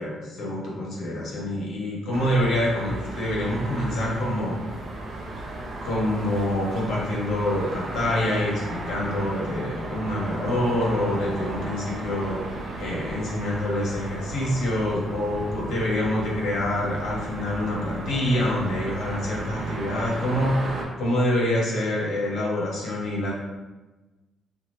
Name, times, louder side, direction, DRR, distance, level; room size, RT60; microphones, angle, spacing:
voice 1, 0.0-4.8 5.8-12.4 12.8-20.5 21.0-23.3, left 1 dB, 75° left, -4 dB, 1.0 m, -26 dB
sound 1, 2.1-20.8, right 2 dB, 60° right, 0.6 m, -35 dB
2.8 x 2.4 x 3.1 m, 1.2 s
cardioid pair, 90°, 0 cm